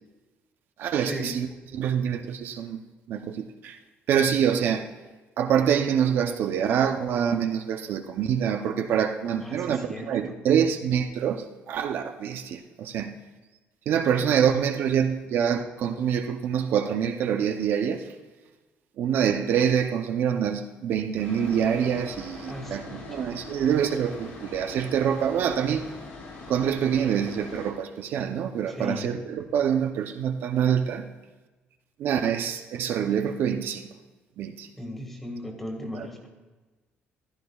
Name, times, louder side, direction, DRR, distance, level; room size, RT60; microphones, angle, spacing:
voice 1, 0.8-2.8 3.1-3.8 4.1-4.9 5.4-13.2 13.9-18.1 19.0-26.0 26.5-31.1 32.0-33.9 34.4-34.7 35.9-36.1, right 8 dB, 65° right, 5 dB, 0.6 m, -26 dB
voice 2, 9.4-10.4 22.5-23.2 28.7-29.1 34.8-36.3, equal, 5° left, 2 dB, 1.8 m, -37 dB
sound 1, 21.2-27.7, left 2 dB, 80° left, 3.1 m, -42 dB
15.0 x 11.5 x 2.3 m, 1.2 s
cardioid pair, 145°, 4 cm